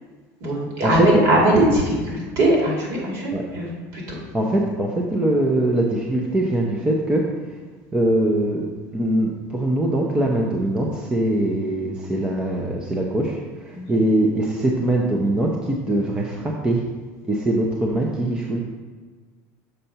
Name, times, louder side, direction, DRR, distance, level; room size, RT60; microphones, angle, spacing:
voice 1, 0.4-4.2 13.7-14.0, right 1 dB, 50° right, -3 dB, 2.3 m, -21 dB
voice 2, 4.3-7.2 7.9-8.6 8.9-16.8 17.3-18.6, right 1 dB, 10° right, -1 dB, 0.6 m, -22 dB
6.6 x 4.3 x 5.4 m, 1.4 s
cardioid pair, 165°, 7 cm